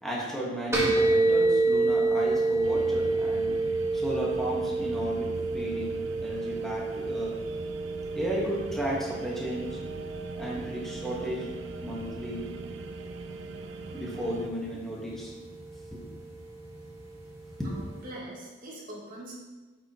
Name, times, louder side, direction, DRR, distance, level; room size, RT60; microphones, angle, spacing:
voice 1, 0.0-3.6 3.9-7.4 8.1-9.8 10.4-11.5 11.8-12.5 13.9-15.3 15.9-16.0 17.6-17.7, right 1 dB, ahead, -4 dB, 1.4 m, -34 dB
sound 1, 0.7-18.1, right 3 dB, 15° right, 1.4 m, -30 dB
sound 2, 2.6-14.5, right 4 dB, 85° right, 0.4 m, -42 dB
voice 2, 17.6-19.3, right 1 dB, 50° right, -4 dB, 1.8 m, -43 dB
8.0 x 5.7 x 2.9 m, 1.2 s
head